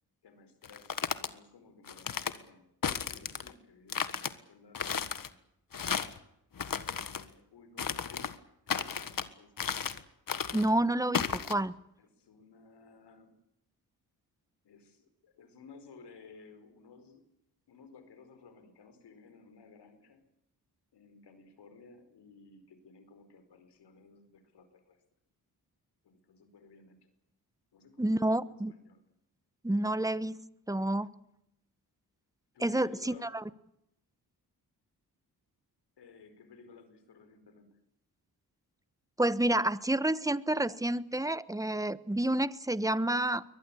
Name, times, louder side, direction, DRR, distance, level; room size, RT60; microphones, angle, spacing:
voice 1, 0.2-5.3 6.8-8.4 8.7-9.7 12.0-13.4 14.6-17.2 17.7-20.2 20.9-25.0 26.0-27.1 27.7-29.0 32.5-33.3 36.0-37.8, left 4 dB, 85° left, 9 dB, 5.0 m, -56 dB
sound 1, 0.6-1.3 1.9-2.4 2.8-3.5 3.9-4.3 4.7-5.3 5.7-6.2 6.6-7.2 7.8-8.3 8.7-9.3 9.6-10.0 10.3-10.7 11.1-11.5, left 7 dB, 55° left, 1.7 m, -34 dB
voice 2, 10.5-11.7 28.0-28.7 29.6-30.4 30.7-31.1 32.6-33.3 39.2-43.4, right 1 dB, 10° right, 16 dB, 1.2 m, -29 dB
23.0 x 19.5 x 8.7 m, 0.80 s
cardioid pair, 60°, 40 cm